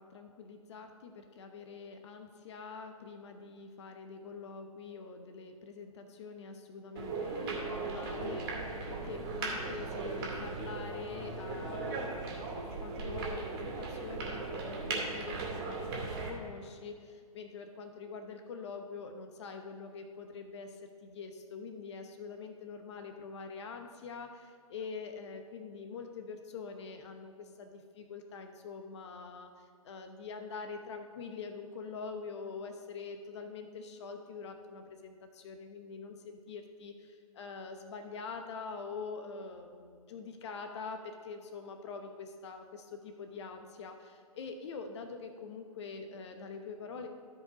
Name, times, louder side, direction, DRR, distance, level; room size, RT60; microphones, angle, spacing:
voice 1, 0.0-20.8 21.0-29.5 29.8-47.1, left 5 dB, 50° left, 6 dB, 0.9 m, -45 dB
sound 1, 7.0-16.3, right 3 dB, 35° right, 2.3 m, -38 dB
13.5 x 4.9 x 4.8 m, 2.1 s
figure-of-eight pair, 125°, 19 cm